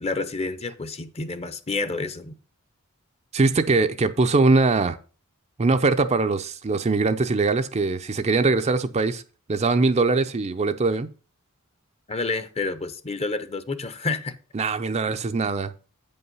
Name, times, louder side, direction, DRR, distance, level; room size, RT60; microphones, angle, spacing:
voice 1, 0.0-2.3 12.1-14.3, left 3 dB, 30° left, 0.7 m, -29 dB
voice 2, 3.3-5.0 5.6-9.2 9.5-11.1 14.5-15.8, right 3 dB, 30° right, 0.5 m, -22 dB
8.5 x 5.5 x 5.4 m
head